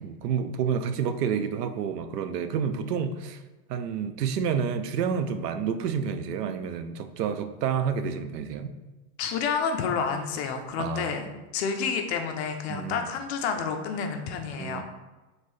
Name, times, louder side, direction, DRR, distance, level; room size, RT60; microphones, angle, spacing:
voice 1, 0.0-3.4 3.7-8.7 10.8-11.1 12.7-13.1 14.6-14.8, right 7 dB, 80° right, 9 dB, 0.6 m, -29 dB
voice 2, 9.2-14.8, left 6 dB, 45° left, 5 dB, 0.5 m, -29 dB
4.3 x 3.1 x 3.1 m, 1.1 s
supercardioid pair, 145°, 48 cm